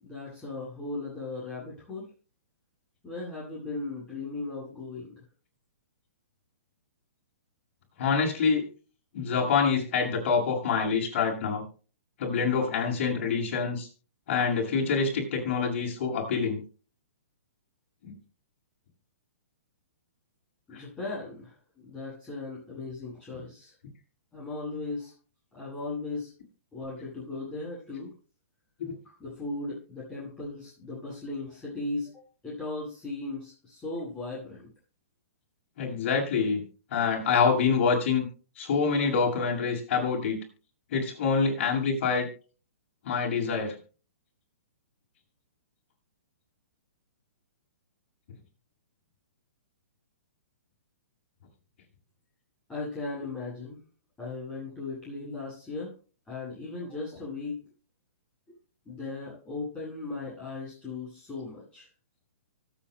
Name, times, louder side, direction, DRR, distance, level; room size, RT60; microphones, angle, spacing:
voice 1, 0.0-2.1 3.0-5.2 20.7-23.7 24.3-25.1 25.5-26.3 26.7-28.1 29.0-34.7 52.7-53.8 54.2-55.9 56.2-57.6 58.9-61.9, left 3 dB, 15° left, -8 dB, 7.8 m, -37 dB
voice 2, 8.0-8.6 9.1-11.6 12.2-13.9 14.3-16.6 18.0-18.1 20.7-20.8 28.8-28.9 35.8-36.6 36.9-38.3 38.6-40.4 40.9-42.3 43.1-43.8, left 5 dB, 50° left, 0 dB, 6.9 m, -26 dB
24.5 x 8.8 x 2.2 m, 0.36 s
hypercardioid pair, 140°, 8 cm